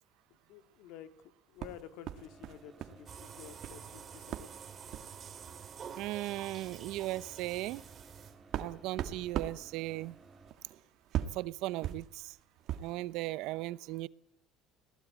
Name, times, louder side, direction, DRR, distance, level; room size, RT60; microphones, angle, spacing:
voice 1, 0.5-4.5, left 10 dB, 70° left, 2.0 m, -51 dB
sound 1, 1.6-3.0 3.3-3.8 4.3-4.5 4.9-5.1 6.0-6.1 6.5-6.6 7.1-13.0, right 11 dB, 50° right, 1.9 m, -40 dB
sound 2, 2.2-10.5, right 3 dB, 15° right, 3.7 m, -58 dB
sound 3, 3.1-8.6, right 7 dB, 35° right, 2.7 m, -49 dB
voice 2, 6.0-7.8 8.6-10.2 11.3-12.3 12.8-14.1, right 17 dB, 70° right, 0.8 m, -37 dB
22.0 x 17.0 x 8.4 m
cardioid pair, 140°, 0 cm